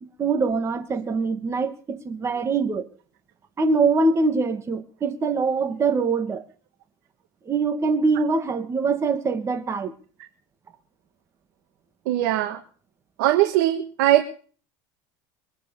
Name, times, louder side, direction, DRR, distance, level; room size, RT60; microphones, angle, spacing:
voice 1, 0.0-2.9 3.6-6.5 7.5-9.9, right 4 dB, 25° right, 2.3 m, -23 dB
voice 2, 12.0-12.6 13.2-14.3, right 14 dB, 75° right, 1.7 m, -20 dB
23.0 x 8.5 x 6.8 m
supercardioid pair, 120°, 11 cm